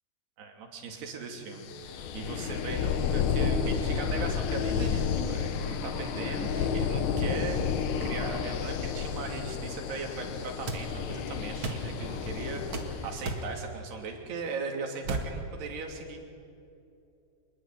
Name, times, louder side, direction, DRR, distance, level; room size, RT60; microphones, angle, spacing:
voice 1, 0.4-7.6 8.0-16.2, right 4 dB, 75° right, 2 dB, 5.0 m, -38 dB
sound 1, 1.0-8.6, left 3 dB, 50° left, 5.2 m, -41 dB
sound 2, 1.6-13.4, left 7 dB, 80° left, 3.4 m, -31 dB
sound 3, 10.7-10.8 11.6-11.9 12.7-12.9 13.3-13.5 15.0-15.3, right 2 dB, 40° right, 2.1 m, -32 dB
26.5 x 20.5 x 9.3 m, 2.7 s
omnidirectional pair, 4.7 m